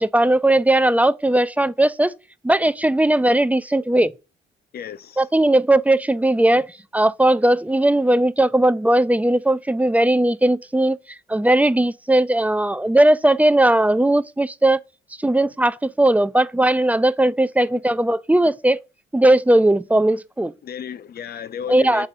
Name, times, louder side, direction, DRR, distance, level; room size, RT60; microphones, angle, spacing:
voice 1, 0.0-2.1 2.4-4.1 5.2-6.7 6.9-11.0 11.3-14.8 15.2-18.8 19.1-20.5 21.7-22.1, right 1 dB, 5° right, 0.4 m, -18 dB
voice 2, 4.7-5.3 20.6-22.1, left 8 dB, 50° left, 0.7 m, -33 dB
8.2 x 3.6 x 5.4 m
cardioid pair, 90°, 20 cm